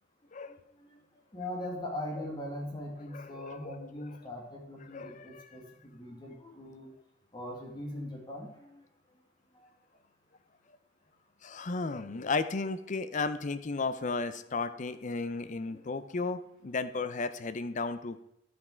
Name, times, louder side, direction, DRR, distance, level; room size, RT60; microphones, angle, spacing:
voice 1, 0.5-0.9 1.3-6.9 7.3-8.8 15.7-15.8, left 1 dB, 25° left, 0 dB, 1.7 m, -41 dB
voice 2, 3.1-3.8 4.9-5.5 11.4-18.2, left 3 dB, 40° left, 12 dB, 0.5 m, -34 dB
10.5 x 6.1 x 4.4 m, 0.82 s
head